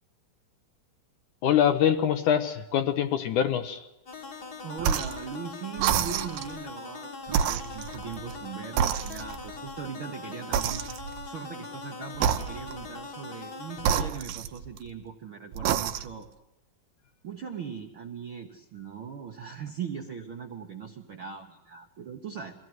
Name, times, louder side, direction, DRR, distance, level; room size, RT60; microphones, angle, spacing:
voice 1, 1.4-3.9, left 9 dB, 70° left, 9 dB, 2.1 m, -24 dB
sound 1, 4.1-14.1, left 4 dB, 40° left, 1.6 m, -41 dB
voice 2, 4.6-10.8 11.2-16.3 17.2-22.5, right 7 dB, 60° right, 2 dB, 1.4 m, -39 dB
sound 2, 4.8-5.2 5.8-6.6 7.3-8.4 8.8-9.6 10.5-11.3 12.2-12.9 13.8-14.9 15.5-16.3, right 8 dB, 75° right, 2.5 m, -28 dB
23.5 x 16.0 x 7.8 m, 1.0 s
omnidirectional pair, 4.2 m